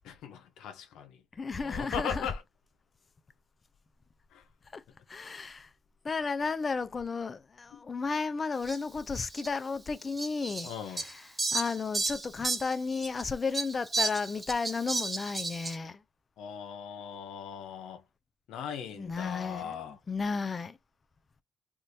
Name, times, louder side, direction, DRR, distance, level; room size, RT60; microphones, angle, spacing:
voice 1, 0.0-1.2 1.6-2.4 4.3-4.4 7.7-7.8 10.6-11.0 16.4-18.0 18.5-20.0, left 8 dB, 85° left, 0.8 m, -39 dB
voice 2, 1.4-2.3 4.7-4.8 5.1-5.7 6.0-11.2 11.5-16.0 18.9-20.8, left 4 dB, 35° left, 0.5 m, -33 dB
Fowl, 8.6-8.8 9.3-9.5 10.2-13.2 13.5-15.7, right 2 dB, 20° right, 1.0 m, -33 dB
3.5 x 2.6 x 2.9 m
cardioid pair, 90°, 0 cm